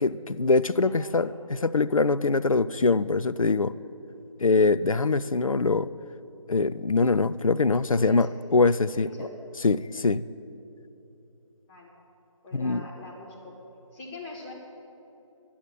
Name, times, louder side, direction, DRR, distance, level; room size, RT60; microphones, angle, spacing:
voice 1, 0.0-3.7 4.4-5.9 6.5-8.3 8.5-9.3 9.6-10.2 12.5-12.8, left 3 dB, 85° left, 15 dB, 0.5 m, -23 dB
voice 2, 0.8-1.3 7.9-8.7 9.0-9.3 11.7-11.9 12.4-13.6 13.9-14.5, left 2 dB, 10° left, -5 dB, 1.6 m, -43 dB
11.5 x 8.6 x 9.2 m, 2.9 s
figure-of-eight pair, 160°, 17 cm